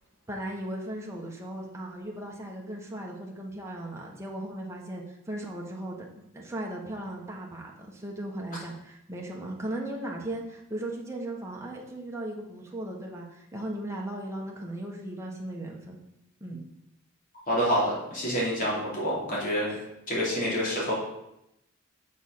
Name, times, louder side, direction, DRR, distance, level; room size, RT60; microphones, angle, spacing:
voice 1, 0.3-16.0 16.4-16.6 19.7-19.9, right 1 dB, 15° right, -2 dB, 1.1 m, -37 dB
voice 2, 17.5-19.8 20.1-20.9, equal, 40° left, -6 dB, 2.8 m, -27 dB
6.4 x 4.2 x 6.4 m, 0.85 s
head